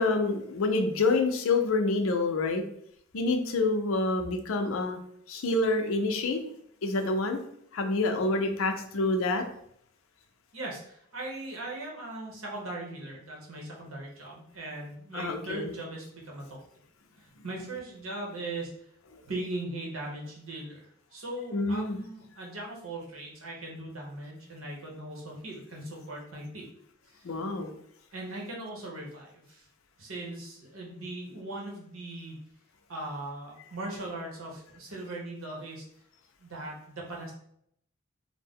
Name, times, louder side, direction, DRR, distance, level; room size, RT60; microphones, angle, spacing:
voice 1, 0.0-2.6 3.1-5.0 5.3-6.4 6.8-7.4 7.7-9.4 15.1-15.7 21.5-22.0 27.2-27.7, left 3 dB, 80° left, 6 dB, 0.5 m, -27 dB
voice 2, 10.5-16.6 17.2-18.7 19.2-26.6 27.1-27.4 28.1-29.7 30.0-32.4 32.9-35.8 36.4-37.3, right 2 dB, 85° right, -2 dB, 0.9 m, -39 dB
2.5 x 2.1 x 3.5 m, 0.69 s
head